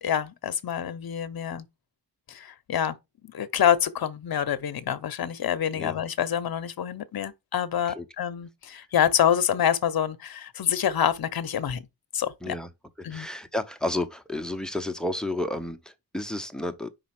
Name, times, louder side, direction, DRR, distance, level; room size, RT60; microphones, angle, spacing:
voice 1, 0.0-1.7 2.3-3.0 3.2-11.8 12.1-12.6 13.0-13.3, left 9 dB, 60° left, 0.8 m, -26 dB
voice 2, 13.0-16.9, left 1 dB, ahead, 0.7 m, -31 dB
5.2 x 4.0 x 5.8 m
wide cardioid pair, 125°, 41 cm